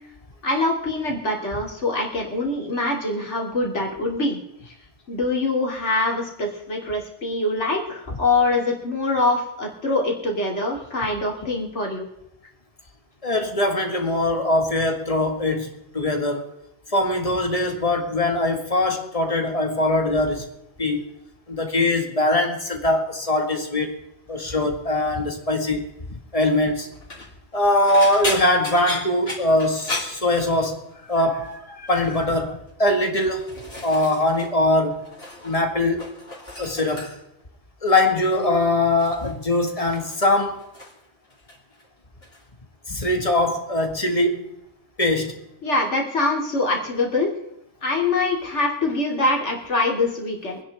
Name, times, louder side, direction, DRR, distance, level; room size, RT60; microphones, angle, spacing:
voice 1, 0.4-4.4 5.1-12.0 45.6-47.3 47.8-50.6, left 2 dB, 70° left, 3.1 m, -24 dB
voice 2, 13.2-16.4 16.9-20.5 20.8-21.1 21.5-23.9 24.3-25.8 26.3-26.9 27.5-30.8 31.1-33.5 33.8-35.0 35.4-36.0 36.6-37.1 37.8-40.6 42.9-44.4 45.0-45.4, left 1 dB, 30° left, 1.9 m, -22 dB
sound 1, 26.9-27.3 27.9-30.9 31.2-31.5 31.9-32.4 33.1-34.5 34.8-35.6 35.9-37.4 38.3-38.6 39.0-41.0 41.3-41.8 42.2-42.4 43.7-43.8, left 2 dB, 55° left, 3.5 m, -35 dB
26.0 x 10.5 x 3.5 m
omnidirectional pair, 1.2 m